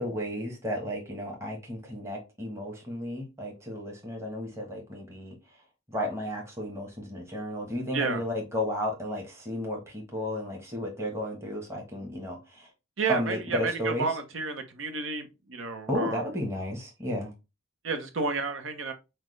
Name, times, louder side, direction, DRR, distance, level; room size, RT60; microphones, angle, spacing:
voice 1, 0.0-5.3 5.9-12.7 13.1-14.1 15.9-17.3, left 1 dB, 15° right, 1.2 m, -33 dB
voice 2, 7.9-8.2 13.0-16.2 17.8-18.9, right 4 dB, 70° right, 0.8 m, -31 dB
5.8 x 2.1 x 3.2 m
head